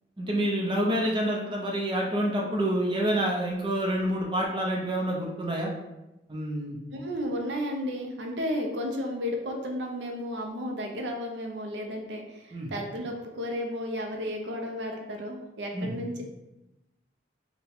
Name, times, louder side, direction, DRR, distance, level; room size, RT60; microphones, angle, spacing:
voice 1, 0.2-5.7 6.3-6.8 12.5-12.7 15.7-16.0, right 1 dB, 25° right, -2 dB, 0.6 m, -28 dB
voice 2, 6.9-16.2, equal, 80° right, 2 dB, 0.6 m, -33 dB
4.5 x 2.2 x 3.5 m, 0.95 s
head